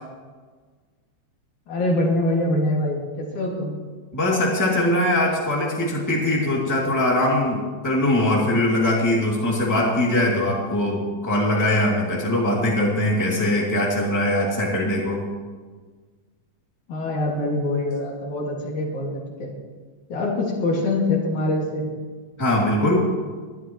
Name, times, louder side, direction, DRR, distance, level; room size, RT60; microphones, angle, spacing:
voice 1, 1.7-3.7 16.9-19.5 20.1-21.8, left 2 dB, 75° left, -2 dB, 3.7 m, -24 dB
voice 2, 4.1-15.2 22.4-23.0, left 1 dB, 5° left, -3 dB, 2.2 m, -21 dB
20.5 x 12.0 x 3.2 m, 1.5 s
omnidirectional pair, 3.5 m